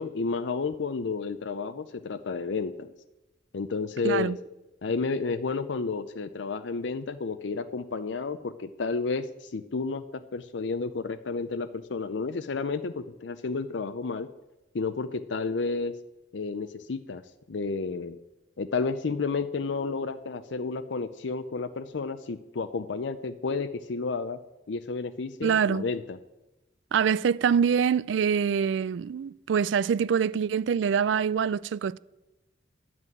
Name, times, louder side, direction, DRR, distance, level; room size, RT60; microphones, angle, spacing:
voice 1, 0.0-2.9 3.5-4.3 4.8-10.0 10.3-14.3 14.7-16.0 16.3-17.2 17.5-18.2 18.6-24.4 24.7-26.2, left 4 dB, 75° left, 0.5 m, -31 dB
voice 2, 4.0-4.4 25.4-25.8 26.9-32.0, right 7 dB, 80° right, 0.3 m, -25 dB
11.0 x 6.1 x 9.0 m
head